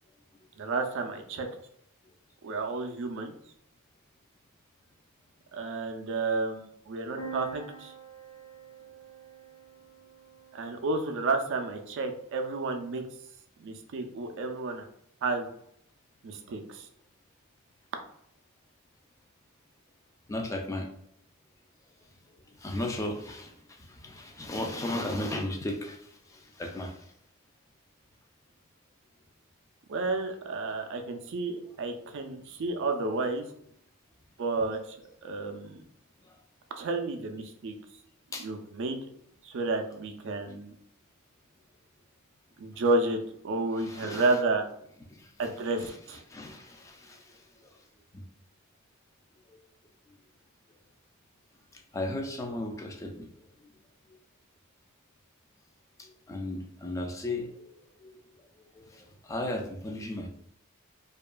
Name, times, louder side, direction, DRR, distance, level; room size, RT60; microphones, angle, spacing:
voice 1, 0.6-1.5 2.4-3.4 5.5-7.9 10.5-13.0 13.6-14.9 15.2-15.5 16.2-16.9 29.9-33.5 34.4-35.0 35.2-35.8 36.8-37.8 38.4-39.0 39.4-40.7 42.6-43.2 43.4-44.7 45.4-46.2, right 3 dB, 60° right, 5 dB, 0.4 m, -31 dB
sound 1, 7.2-10.9, right 5 dB, 80° left, 1.0 m, -46 dB
voice 2, 20.3-20.9 22.6-27.1 38.3-38.5 43.8-44.4 45.1-45.5 45.8-47.7 48.1-48.2 51.7-53.3 53.6-53.7 56.0-57.7 58.0-58.1 58.7-60.3, left 1 dB, 15° left, 3 dB, 0.3 m, -36 dB
2.7 x 2.4 x 2.2 m, 0.71 s
head